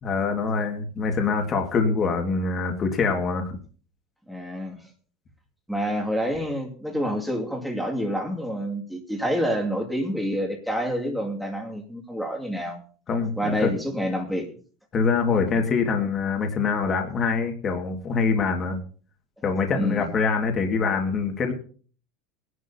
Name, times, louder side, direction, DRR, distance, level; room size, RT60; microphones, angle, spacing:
voice 1, 0.0-3.6 13.1-13.7 14.9-18.8 19.4-21.5, left 5 dB, 25° left, 3 dB, 1.8 m, -24 dB
voice 2, 4.3-4.8 5.7-12.8 13.4-14.5 19.7-20.1, equal, ahead, 1 dB, 2.2 m, -28 dB
21.5 x 11.0 x 2.8 m, 0.41 s
supercardioid pair, 150°, 0 cm